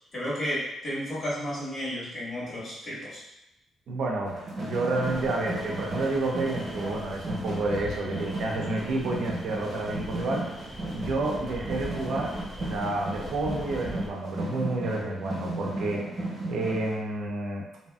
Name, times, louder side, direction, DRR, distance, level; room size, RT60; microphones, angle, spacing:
voice 1, 0.1-3.2, equal, 45° left, -8 dB, 1.4 m, -32 dB
voice 2, 3.9-10.4 10.9-16.0 16.5-17.7, right 2 dB, 75° right, -1 dB, 0.5 m, -30 dB
sound 1, 4.3-17.0, right 1 dB, 50° right, 0.9 m, -35 dB
sound 2, 4.9-14.1, equal, ahead, 0.4 m, -43 dB
2.7 x 2.5 x 2.3 m, 0.89 s
cardioid pair, 110°, 0 cm